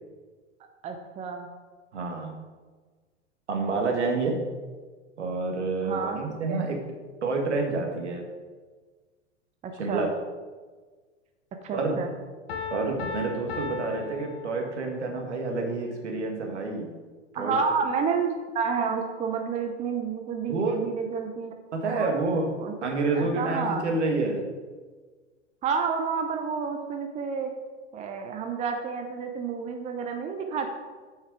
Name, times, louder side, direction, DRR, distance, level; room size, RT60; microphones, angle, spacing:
voice 1, 0.8-1.5 5.8-6.2 6.5-6.6 9.6-10.1 11.6-12.1 17.3-22.2 22.6-22.9 23.1-23.8 25.6-27.5 27.9-30.7, right 5 dB, 20° right, 5 dB, 0.7 m, -30 dB
voice 2, 1.9-2.4 3.5-4.4 5.2-6.8 7.2-8.3 9.8-10.1 11.7-11.9 12.7-17.0 17.3-17.6 20.5-20.9 21.7-22.5 22.8-24.5, right 3 dB, 70° right, 2 dB, 1.8 m, -28 dB
Piano, 12.5-15.1, left 4 dB, 55° left, 1.3 m, -36 dB
9.1 x 5.7 x 4.8 m, 1.4 s
figure-of-eight pair, 95°, 36 cm